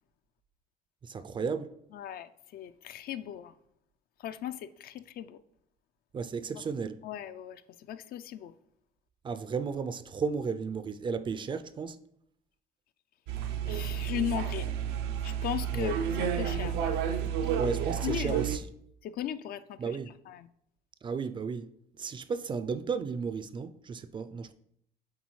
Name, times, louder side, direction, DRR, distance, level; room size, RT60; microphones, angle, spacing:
voice 1, 1.0-1.7 6.1-7.0 9.2-12.0 15.7-15.9 17.6-18.7 19.8-20.1 21.0-24.5, right 5 dB, 30° right, 0.3 m, -34 dB
voice 2, 1.9-3.6 4.2-5.4 7.0-7.6 7.9-8.5 13.7-14.7 15.2-17.5 18.0-18.4 19.0-20.0 20.3-20.5, left 10 dB, 65° left, 0.4 m, -37 dB
sound 1, 13.3-18.6, right 9 dB, 90° right, 0.6 m, -31 dB
8.1 x 3.7 x 3.1 m
cardioid pair, 110°, 17 cm